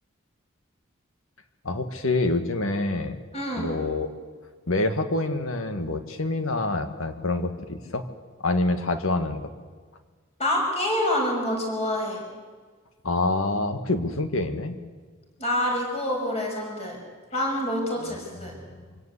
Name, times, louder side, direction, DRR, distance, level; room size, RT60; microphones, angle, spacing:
voice 1, 1.6-3.2 3.6-4.1 4.7-8.1 8.4-9.5 13.0-14.8 18.0-18.2, left 2 dB, 75° left, 8 dB, 1.8 m, -26 dB
voice 2, 3.3-3.7 10.4-12.2 15.4-17.0 17.3-18.6, left 1 dB, 30° left, 0 dB, 6.0 m, -27 dB
25.5 x 17.5 x 8.4 m, 1.5 s
head